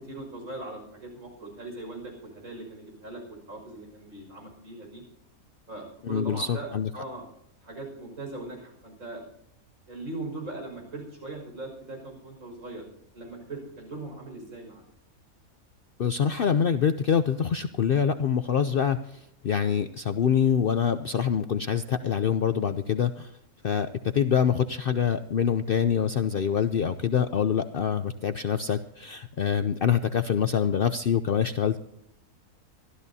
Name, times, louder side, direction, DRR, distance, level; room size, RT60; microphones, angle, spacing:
voice 1, 0.0-5.0 5.7-6.7 6.9-7.2 7.6-9.2 9.9-12.9 13.1-14.8, right 2 dB, 70° right, 1 dB, 6.1 m, -40 dB
voice 2, 6.0-6.9 16.0-23.3 23.6-31.8, left 7 dB, 60° left, 10 dB, 0.6 m, -25 dB
24.0 x 13.0 x 2.7 m, 0.78 s
omnidirectional pair, 1.5 m